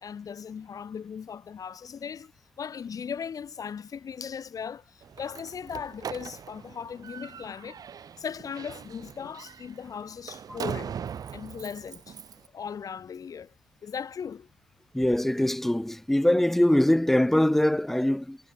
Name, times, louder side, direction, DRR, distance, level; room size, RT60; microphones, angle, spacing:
voice 1, 0.0-2.3 2.6-7.8 8.2-10.9 11.3-12.2 12.5-13.5 13.8-14.5, left 7 dB, 45° left, 2.4 m, -38 dB
Slam, 5.0-12.5, right 8 dB, 50° right, 1.2 m, -40 dB
voice 2, 14.9-18.4, left 1 dB, 5° left, 0.3 m, -23 dB
wide cardioid pair, 145°, 8 cm